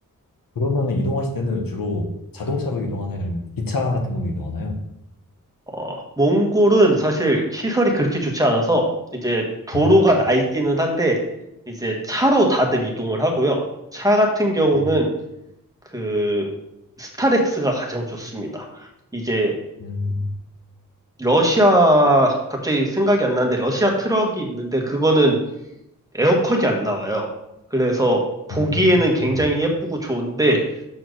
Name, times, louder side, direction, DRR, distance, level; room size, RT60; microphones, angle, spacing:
voice 1, 0.5-4.8 9.7-9.9 14.7-14.8 19.8-20.3 28.6-29.0, left 2 dB, 80° left, 2 dB, 1.3 m, -25 dB
voice 2, 5.7-8.9 9.2-11.2 11.7-13.6 13.9-15.1 15.9-16.5 17.0-18.7 19.1-19.5 21.2-25.4 26.1-27.3 27.7-28.2 28.5-30.6, right 1 dB, 10° right, 0 dB, 1.3 m, -19 dB
6.5 x 4.5 x 6.3 m, 0.82 s
wide cardioid pair, 175°, 34 cm